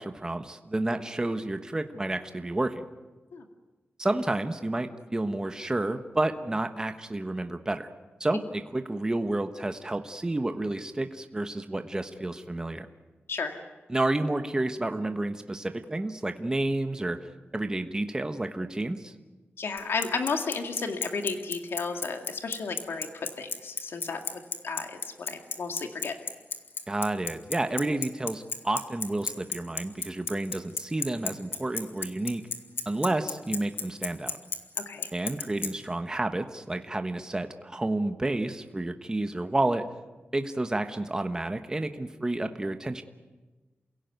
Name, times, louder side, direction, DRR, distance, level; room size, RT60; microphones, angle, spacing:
voice 1, 0.0-2.8 4.0-7.9 8.2-12.9 13.9-17.3 17.5-19.1 26.9-32.4 32.8-34.4 35.1-39.8 40.3-43.0, right 2 dB, 20° right, 7 dB, 1.2 m, -30 dB
voice 2, 19.6-26.1 34.8-35.1, left 4 dB, 80° left, 5 dB, 2.2 m, -33 dB
Bicycle, 19.8-35.7, left 5 dB, 65° left, 2.0 m, -31 dB
28.5 x 17.0 x 9.4 m, 1.2 s
wide cardioid pair, 130°, 4 cm